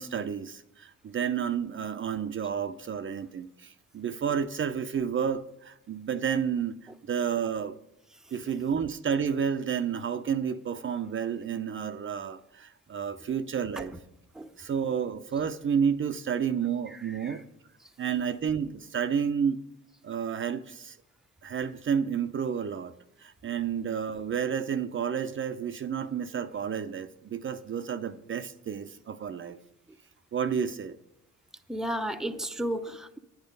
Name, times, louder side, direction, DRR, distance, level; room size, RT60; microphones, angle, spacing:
voice 1, 0.0-6.8 7.1-7.8 8.3-13.9 14.6-17.4 18.0-19.6 20.0-21.0 21.4-29.6 30.3-31.0, right 7 dB, 40° right, 9 dB, 0.6 m, -30 dB
voice 2, 16.9-17.4 17.8-17.9 31.7-33.2, equal, ahead, 7 dB, 0.7 m, -34 dB
10.5 x 9.6 x 5.3 m, 0.85 s
cardioid pair, 90°, 30 cm